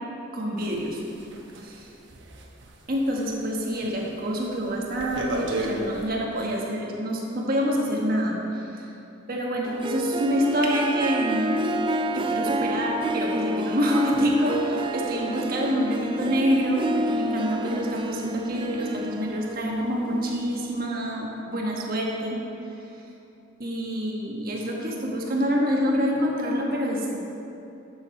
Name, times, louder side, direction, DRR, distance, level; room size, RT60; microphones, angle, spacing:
voice 1, 0.3-1.0 1.6-1.9 2.9-8.9 9.3-11.4 12.1-22.4 23.6-27.2, equal, 50° right, -2 dB, 1.4 m, -26 dB
sound 1, 0.6-3.4 3.7-4.0 4.4-6.1, right 1 dB, 65° right, 1.0 m, -34 dB
Harp, 9.6-20.9, right 1 dB, 25° right, 0.3 m, -30 dB
11.0 x 7.5 x 4.3 m, 2.8 s
head